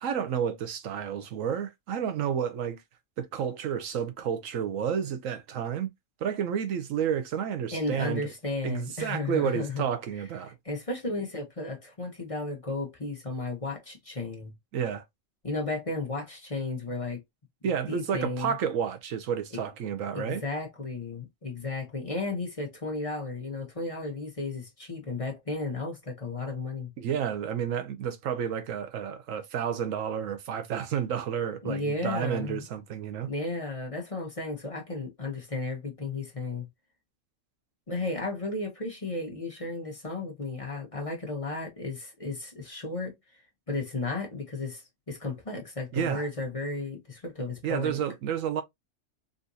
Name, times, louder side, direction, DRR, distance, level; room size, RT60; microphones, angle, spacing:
voice 1, 0.0-2.8 3.2-5.9 6.2-8.3 8.6-10.5 14.7-15.0 17.6-20.4 27.0-33.3 45.9-46.3 47.6-48.6, right 8 dB, 90° right, 1.1 m, -30 dB
voice 2, 7.7-9.8 10.6-14.5 15.4-17.2 17.9-18.6 19.5-19.6 20.1-26.9 31.6-32.6 33.3-36.7 37.9-43.4 43.7-48.0, left 3 dB, 30° left, 0.9 m, -34 dB
3.9 x 2.5 x 2.6 m
omnidirectional pair, 1.3 m